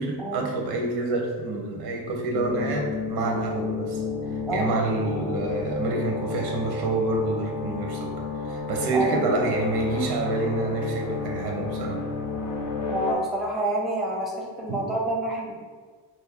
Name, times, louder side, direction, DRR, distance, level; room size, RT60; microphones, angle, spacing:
voice 1, 0.0-4.0 4.5-8.1 8.5-12.0 14.7-14.8, right 3 dB, 85° right, 1 dB, 0.7 m, -27 dB
sound 1, 2.3-13.1, left 4 dB, 55° left, 0.5 m, -31 dB
voice 2, 8.9-9.3 12.9-15.6, right 1 dB, ahead, -2 dB, 0.5 m, -28 dB
2.6 x 2.5 x 3.5 m, 1.5 s
cardioid pair, 130°, 38 cm